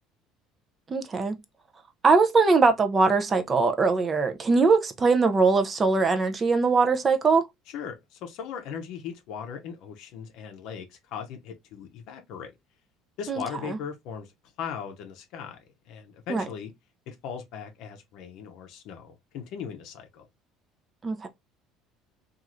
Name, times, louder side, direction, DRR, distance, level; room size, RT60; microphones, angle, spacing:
voice 1, 0.9-1.4 2.0-7.4 13.3-13.8 16.3-16.4 21.0-21.3, right 4 dB, 25° right, 0.4 m, -22 dB
voice 2, 7.7-12.5 13.2-14.3 14.6-15.6 15.9-16.7 17.1-20.3, left 7 dB, 65° left, 0.6 m, -38 dB
3.0 x 2.4 x 2.4 m
cardioid pair, 130°, 0 cm